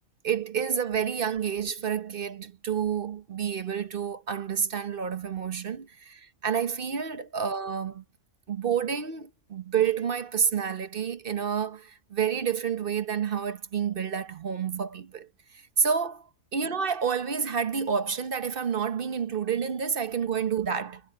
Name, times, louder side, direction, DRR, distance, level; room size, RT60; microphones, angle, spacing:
voice 1, 0.2-8.0 8.5-15.3 15.8-16.2 16.5-21.0, right 7 dB, 45° right, 1.0 m, -29 dB
omnidirectional pair, 1.4 m